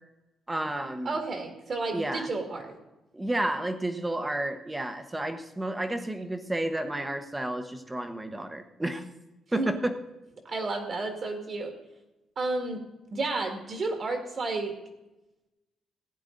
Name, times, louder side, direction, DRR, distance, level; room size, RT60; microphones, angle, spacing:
voice 1, 0.5-1.2 1.9-2.3 3.1-9.0 9.5-9.9, right 1 dB, 10° right, 8 dB, 1.0 m, -31 dB
voice 2, 1.0-2.8 9.5-9.7 10.5-11.7 12.4-12.8 13.1-14.7, right 3 dB, 35° right, 4 dB, 1.9 m, -31 dB
16.5 x 9.9 x 3.9 m, 0.98 s
cardioid pair, 160°, 0 cm